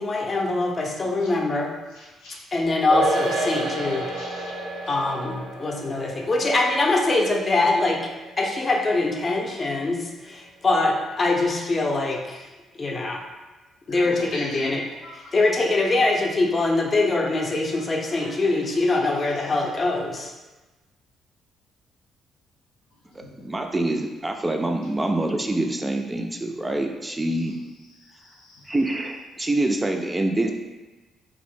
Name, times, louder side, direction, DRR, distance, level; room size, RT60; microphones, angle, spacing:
voice 1, 0.0-1.7 2.5-4.1 4.9-8.0 8.4-12.5 12.7-13.2 13.9-14.8 15.3-20.3, left 2 dB, 40° left, 0 dB, 0.5 m, -23 dB
sound 1, 2.9-9.6 9.8-9.9, right 1 dB, 85° right, 0.5 m, -31 dB
voice 2, 4.1-4.5 13.9-14.7 15.0-15.3 18.1-18.6 23.2-23.4 28.2-28.7, left 2 dB, 80° left, -4 dB, 0.6 m, -40 dB
voice 3, 23.2-27.5 28.7-30.5, right 2 dB, 20° right, 4 dB, 0.3 m, -25 dB
2.6 x 2.0 x 3.1 m, 1.2 s
hypercardioid pair, 50°, 0 cm